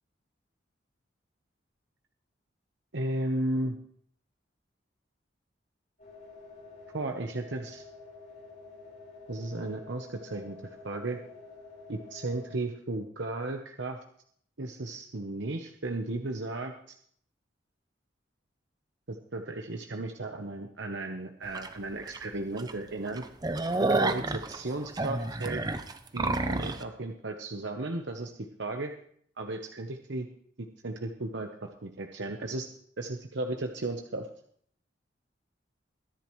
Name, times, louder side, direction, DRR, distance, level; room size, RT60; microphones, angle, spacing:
voice 1, 2.9-3.8 6.9-7.8 9.3-10.6 10.8-11.2 11.9-14.0 14.6-16.7 19.1-23.2 23.8-25.6 26.1-28.9 29.4-30.3 30.6-32.7 33.0-34.3, right 2 dB, 70° right, 4 dB, 1.0 m, -35 dB
sound 1, 6.0-12.6, left 3 dB, 45° left, 4.9 m, -49 dB
sound 2, 21.5-21.7 22.1-22.2 22.6-22.7 23.1-26.8, right 2 dB, 20° right, 0.7 m, -29 dB
21.5 x 10.5 x 3.1 m, 0.62 s
head